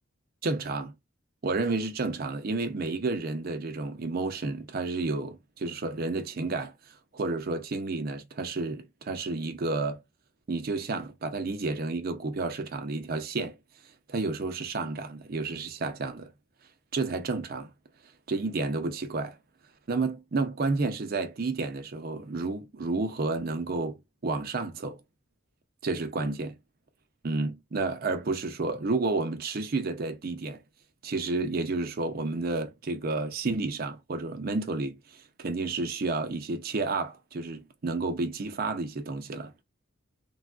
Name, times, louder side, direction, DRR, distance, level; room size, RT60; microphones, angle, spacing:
voice 1, 0.4-0.9 1.4-10.0 10.5-13.6 14.1-16.3 16.9-17.7 18.3-19.4 19.9-24.0 24.2-25.0 25.8-26.6 27.2-30.6 31.0-39.5, right 3 dB, 50° right, 0.5 m, -31 dB
3.3 x 2.2 x 2.3 m
head